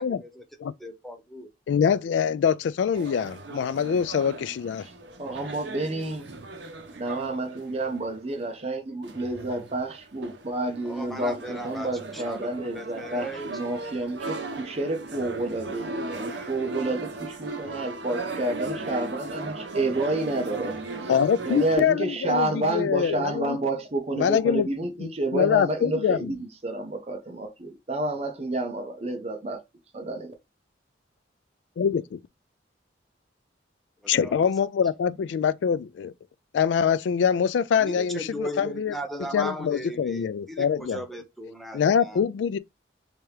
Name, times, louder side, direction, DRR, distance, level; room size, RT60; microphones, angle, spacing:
voice 1, 0.0-0.4 0.8-1.5 10.9-13.6 34.0-34.4 37.8-42.2, equal, ahead, 0.6 m, -37 dB
voice 2, 1.7-4.9 21.1-23.6 24.2-24.7 25.0-26.3 31.8-32.2 34.1-36.1 36.5-38.9 39.2-41.0 41.7-42.6, left 7 dB, 90° left, 0.3 m, -24 dB
sound 1, 2.9-8.6 9.0-21.8, right 3 dB, 75° right, 0.7 m, -37 dB
voice 3, 5.2-6.3 6.9-20.8 21.4-29.6 29.9-30.3, right 2 dB, 35° right, 0.8 m, -30 dB
3.4 x 2.9 x 3.2 m
head